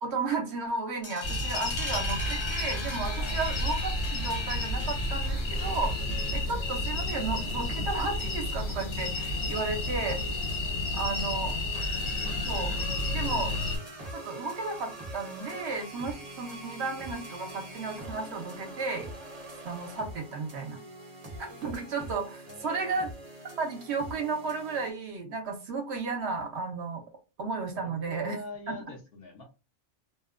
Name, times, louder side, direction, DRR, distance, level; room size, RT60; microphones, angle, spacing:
voice 1, 0.0-5.9 6.3-10.2 10.9-11.5 12.4-12.8 13.1-13.5 14.1-19.1 19.6-20.8 21.6-23.1 23.6-27.0 27.4-28.4 28.7-28.8, right 4 dB, 70° right, 4 dB, 0.9 m, -33 dB
sound 1, 1.0-6.6, left 2 dB, 30° left, 0.5 m, -40 dB
sound 2, 1.2-13.8, left 1 dB, 80° left, 1.1 m, -31 dB
sound 3, 5.5-24.9, right 1 dB, 35° right, 0.8 m, -45 dB
voice 2, 11.0-11.7 22.5-23.1 27.7-29.4, left 2 dB, 60° left, 3 dB, 0.8 m, -45 dB
2.7 x 2.1 x 2.4 m, 0.30 s
omnidirectional pair, 1.2 m